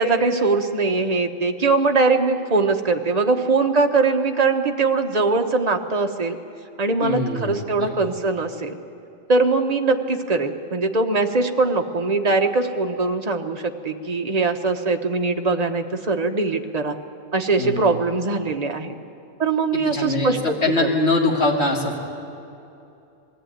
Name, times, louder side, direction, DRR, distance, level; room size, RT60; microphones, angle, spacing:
voice 1, 0.0-6.4 6.8-8.8 9.3-17.0 17.3-18.9 19.4-20.9, right 3 dB, 35° right, 4 dB, 1.0 m, -21 dB
voice 2, 7.0-7.9 17.6-17.9 19.7-22.0, left 2 dB, 50° left, -1 dB, 2.8 m, -23 dB
21.0 x 14.5 x 9.2 m, 2.7 s
omnidirectional pair, 1.4 m